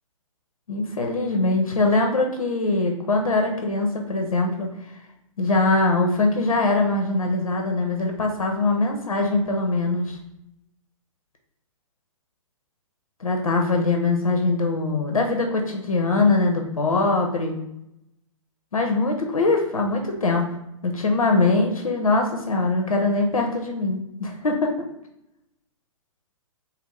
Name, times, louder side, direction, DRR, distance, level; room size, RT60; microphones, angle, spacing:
voice 1, 0.7-4.7 5.4-10.2 13.2-17.6 18.7-20.5 20.8-24.7, left 3 dB, 85° left, 3 dB, 0.5 m, -22 dB
2.8 x 2.5 x 3.2 m, 0.83 s
figure-of-eight pair, 120°, 17 cm